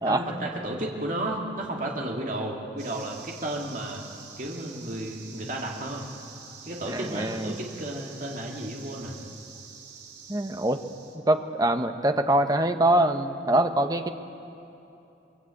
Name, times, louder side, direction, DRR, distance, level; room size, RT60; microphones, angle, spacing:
voice 1, 0.0-4.0 4.4-6.1 6.6-9.2, right 1 dB, 45° right, -1 dB, 2.6 m, -33 dB
sound 1, 2.8-11.2, right 6 dB, 65° right, 3.5 m, -47 dB
voice 2, 6.9-7.6 10.3-10.8 11.1-14.1, right 1 dB, 20° right, 7 dB, 0.9 m, -24 dB
23.5 x 22.0 x 8.6 m, 2.8 s
head